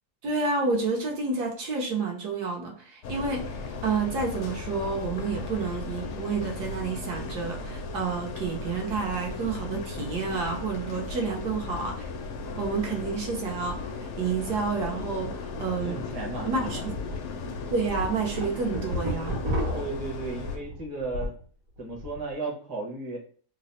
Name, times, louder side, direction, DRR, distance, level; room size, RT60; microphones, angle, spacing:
voice 1, 0.2-12.1 12.6-16.0 16.4-16.9 17.7-19.4, right 4 dB, 80° right, 1.4 m, -30 dB
sound 1, 3.0-20.6, left 3 dB, 70° left, 0.7 m, -36 dB
voice 2, 15.8-16.9 19.7-21.4 21.8-23.2, right 3 dB, 20° right, 0.6 m, -35 dB
sound 2, 15.8-15.9 16.3-16.4 16.9-17.2 17.6-21.4 21.8-22.2, left 1 dB, 60° right, 1.4 m, -31 dB
3.3 x 2.1 x 4.0 m
omnidirectional pair, 1.7 m